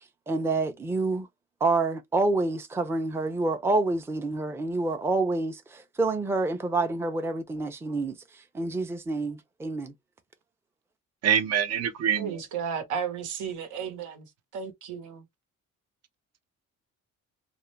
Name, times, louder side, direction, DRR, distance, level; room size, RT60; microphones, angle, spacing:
voice 1, 0.3-1.3 1.6-8.2 8.5-9.9, right 3 dB, 10° right, 0.4 m, -27 dB
voice 2, 11.2-12.4, right 8 dB, 60° right, 0.7 m, -25 dB
voice 3, 12.2-15.2, right 7 dB, 85° right, 1.0 m, -34 dB
2.4 x 2.1 x 3.0 m
cardioid pair, 90°, 30 cm